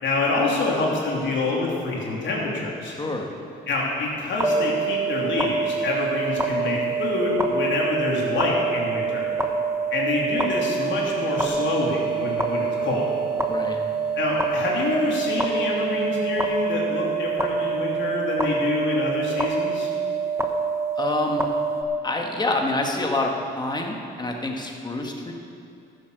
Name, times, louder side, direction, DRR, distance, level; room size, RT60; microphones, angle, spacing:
voice 1, 0.0-2.9 3.7-9.3 9.9-13.1 14.2-19.9, left 3 dB, 70° left, -3 dB, 3.1 m, -26 dB
voice 2, 2.9-3.3 13.5-13.8 21.0-21.4 22.0-25.3, left 2 dB, 20° left, 1 dB, 1.7 m, -27 dB
sound 1, 4.4-21.8, right 5 dB, 15° right, 1.1 m, -26 dB
sound 2, 11.5-16.5, right 1 dB, 55° left, 3.2 m, -44 dB
14.0 x 7.5 x 6.8 m, 2.6 s
cardioid pair, 90°, 20 cm